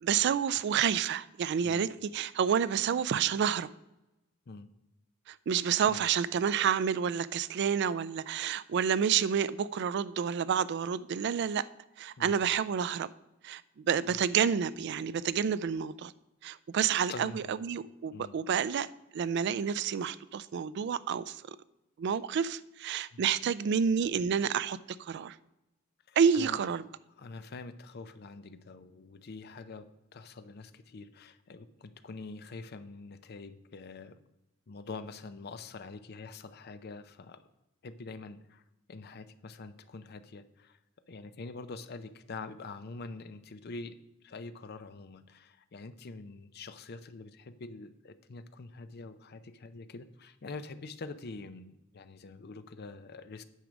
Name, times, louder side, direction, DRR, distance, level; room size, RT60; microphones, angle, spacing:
voice 1, 0.0-3.7 5.3-11.6 12.0-13.1 13.4-16.1 16.4-18.9 19.1-21.6 22.0-25.4 26.2-26.9, right 7 dB, 55° right, 0.3 m, -29 dB
voice 2, 17.1-17.5 18.1-18.4 23.1-23.2 26.1-26.6 27.2-34.2 34.7-37.4 37.8-38.6 38.9-40.8 41.1-53.4, left 3 dB, 50° left, 0.6 m, -45 dB
9.2 x 6.0 x 5.1 m
head